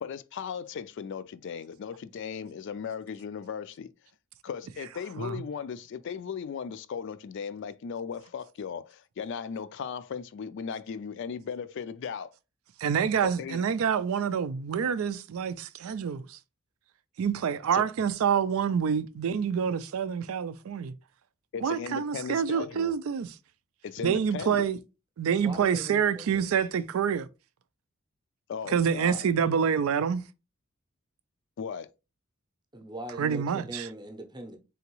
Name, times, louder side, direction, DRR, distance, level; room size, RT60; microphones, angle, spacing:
voice 1, 0.0-3.9 4.4-12.3 13.2-13.6 17.7-17.9 21.5-22.9 23.8-24.7 28.5-29.2 31.6-31.9, left 6 dB, 60° left, 0.3 m, -37 dB
voice 2, 12.8-16.4 17.2-20.9 21.6-23.3 24.0-24.8 25.2-27.3 28.7-30.2 33.2-33.9, right 7 dB, 80° right, 0.4 m, -27 dB
voice 3, 25.4-26.5 32.7-34.6, right 1 dB, 20° right, 0.6 m, -41 dB
3.9 x 3.5 x 3.0 m
head